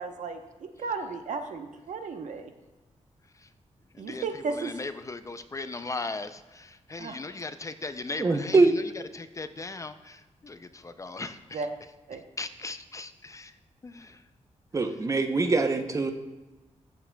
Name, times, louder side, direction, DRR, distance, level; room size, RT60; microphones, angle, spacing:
voice 1, 0.0-2.5 4.0-4.8 7.0-7.2 11.5-11.7 12.1-12.2, right 4 dB, 85° right, 6 dB, 0.8 m, -34 dB
voice 2, 3.9-8.8 9.1-11.6 12.4-13.5 13.8-14.2, left 3 dB, 25° left, 11 dB, 0.3 m, -38 dB
voice 3, 8.2-8.7 14.7-16.1, right 3 dB, 25° right, 7 dB, 0.6 m, -23 dB
14.0 x 7.2 x 2.2 m, 1.1 s
wide cardioid pair, 155°, 12 cm